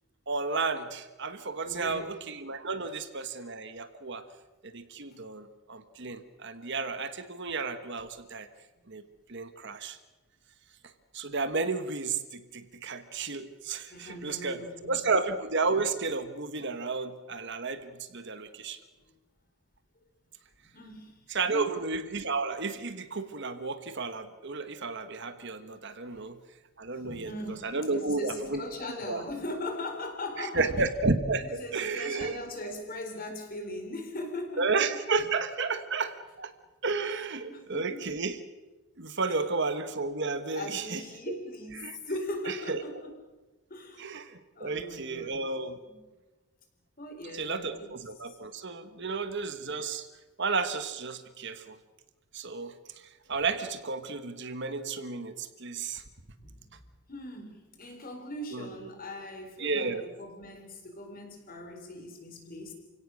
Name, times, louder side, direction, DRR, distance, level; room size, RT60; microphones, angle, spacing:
voice 1, 0.3-4.2 4.7-8.5 8.9-9.0 9.3-10.0 11.1-18.8 21.3-26.4 26.8-27.3 27.6-28.6 29.1-29.2 30.4-31.4 31.7-32.4 34.6-36.5 36.8-38.4 39.0-41.0 41.8-42.0 42.5-42.8 44.0-45.8 47.3-50.1 50.4-51.8 52.3-52.7 53.3-56.0 58.5-58.7 59.6-60.0, right 4 dB, 55° right, 10 dB, 1.4 m, -32 dB
voice 2, 1.6-2.1 13.9-15.1 19.0-19.1 20.7-21.2 21.5-21.8 26.0-26.2 26.9-30.7 31.3-34.6 37.1-38.2 39.3-39.4 40.5-43.1 43.7-44.1 44.5-45.5 45.9-46.0 47.0-48.4 56.4-56.8 57.1-62.7, left 1 dB, 40° left, 5 dB, 4.2 m, -40 dB
29.0 x 17.0 x 6.5 m, 1.2 s
head